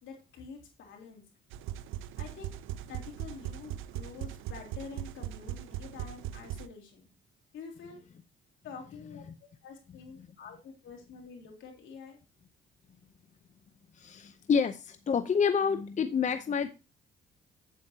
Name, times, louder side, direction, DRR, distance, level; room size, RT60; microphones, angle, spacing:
voice 1, 0.0-1.2 2.2-2.6 2.9-7.1 7.5-8.0 8.6-12.2, left 5 dB, 80° left, 1 dB, 3.4 m, -47 dB
sound 1, 1.5-6.7, right 11 dB, 90° right, 0.5 m, -39 dB
voice 2, 13.9-16.7, left 6 dB, 35° left, 9 dB, 0.6 m, -28 dB
8.4 x 8.2 x 2.8 m, 0.29 s
cardioid pair, 90°, 20 cm